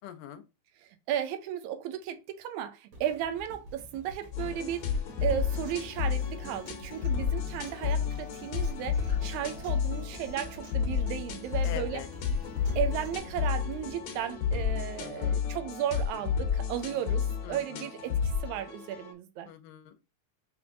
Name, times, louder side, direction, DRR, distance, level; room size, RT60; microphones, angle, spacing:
voice 1, 0.0-0.4 11.6-12.1 15.0-15.4 17.4-17.9 19.5-20.0, left 11 dB, 85° left, 2.1 m, -43 dB
voice 2, 1.1-12.0 12.8-19.5, right 10 dB, 80° right, 1.9 m, -35 dB
sound 1, 2.9-15.1 15.7-15.8, right 1 dB, 60° right, 2.7 m, -48 dB
sound 2, 4.3-19.1, left 7 dB, 70° left, 1.9 m, -31 dB
Acoustic guitar, 5.2-13.2, right 1 dB, 45° right, 1.5 m, -53 dB
6.0 x 3.4 x 2.4 m
omnidirectional pair, 3.6 m